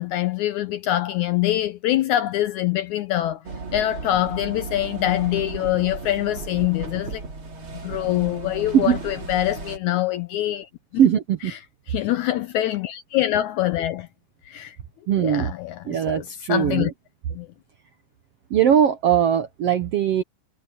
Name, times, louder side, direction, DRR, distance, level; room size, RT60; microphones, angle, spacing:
voice 1, 0.0-3.4 3.7-7.2 7.8-10.7 11.4-11.6 11.9-14.1 14.5-14.8 15.2-16.9 17.3-17.5, left 13 dB, 75° left, 1.8 m, -24 dB
sound 1, 3.5-9.8, right 3 dB, 40° right, 3.4 m, -35 dB
voice 2, 11.0-11.5 15.1-15.5 15.9-16.9 18.5-20.2, right 9 dB, 70° right, 1.4 m, -20 dB
omnidirectional pair, 4.0 m